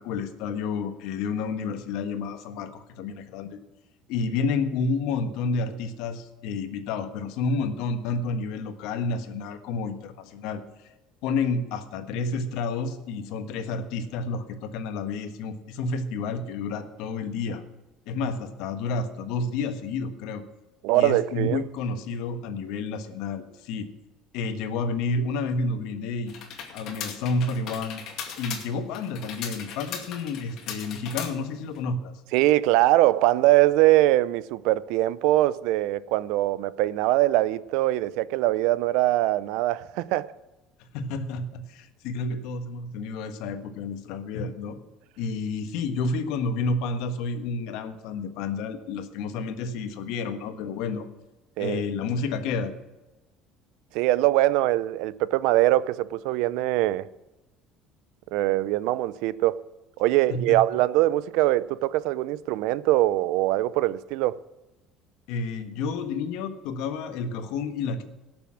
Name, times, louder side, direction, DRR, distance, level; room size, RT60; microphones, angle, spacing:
voice 1, 0.0-3.6 4.1-10.6 11.2-17.6 18.1-20.4 20.9-23.9 24.3-26.3 26.7-28.0 28.4-32.1 40.9-44.8 45.2-51.1 51.6-52.7 60.3-60.6 65.3-68.0, left 4 dB, 75° left, 1.4 m, -30 dB
voice 2, 20.8-21.6 32.3-40.3 51.6-51.8 53.9-57.1 58.3-59.6 60.0-64.4, right 16 dB, 80° right, 0.5 m, -22 dB
sound 1, 26.3-31.8, left 7 dB, 60° left, 2.3 m, -38 dB
17.0 x 6.9 x 6.3 m
cardioid pair, 120°, 0 cm